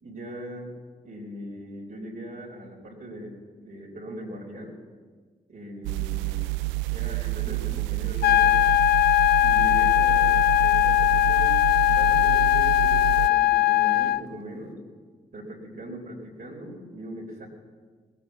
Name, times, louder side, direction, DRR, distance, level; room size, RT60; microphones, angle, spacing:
voice 1, 0.0-0.7 1.0-4.8 5.5-6.4 6.9-8.7 9.4-11.6 11.8-14.8 15.3-17.5, right 1 dB, 50° right, -4 dB, 4.0 m, -40 dB
sound 1, 5.8-13.3, right 23 dB, 80° right, 0.4 m, -29 dB
sound 2, 8.2-14.2, left 15 dB, 60° left, 0.5 m, -20 dB
20.0 x 8.7 x 7.0 m, 1.5 s
hypercardioid pair, 40°, 19 cm